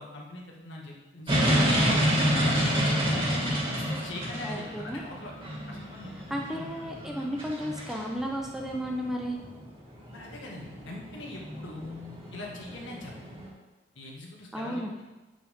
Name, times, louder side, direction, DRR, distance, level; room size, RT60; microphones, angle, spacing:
voice 1, 0.0-2.1 2.4-3.4 3.7-5.3 5.7-6.7 10.1-11.9 12.3-13.3 14.0-15.0, left 2 dB, 80° left, -2 dB, 1.9 m, -42 dB
sound 1, 1.3-13.5, equal, 25° right, 2.7 m, -29 dB
voice 2, 4.4-5.0 6.3-9.4 14.5-14.9, equal, ahead, 0 dB, 0.8 m, -33 dB
9.0 x 7.6 x 3.7 m, 1.1 s
head